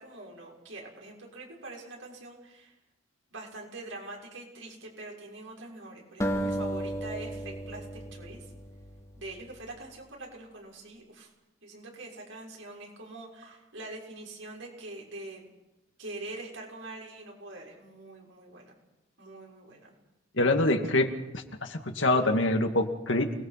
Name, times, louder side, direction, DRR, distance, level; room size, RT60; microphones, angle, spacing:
voice 1, 0.0-2.7 3.3-8.5 9.2-11.3 11.6-15.5 16.0-18.7 19.2-19.9, right 2 dB, 85° right, -1 dB, 6.7 m, -44 dB
sound 1, 6.2-9.4, right 1 dB, 15° left, 2.0 m, -34 dB
voice 2, 20.4-23.3, left 2 dB, 75° left, 4 dB, 2.4 m, -25 dB
29.0 x 20.5 x 6.1 m, 0.99 s
head